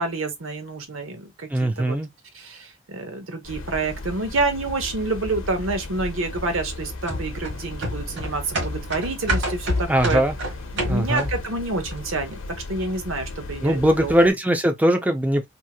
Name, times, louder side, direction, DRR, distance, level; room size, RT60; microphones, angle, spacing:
voice 1, 0.0-2.0 2.3-10.2 10.8-12.4 12.7-14.2, right 3 dB, 90° right, 0.9 m, -28 dB
voice 2, 1.5-2.1 9.9-10.3 10.9-11.3 13.6-15.5, equal, 10° right, 0.5 m, -20 dB
sound 1, 3.4-14.3, left 2 dB, 75° left, 0.7 m, -36 dB
sound 2, 7.1-11.5 11.9-12.0, equal, 65° right, 1.4 m, -28 dB
2.9 x 2.8 x 2.2 m
head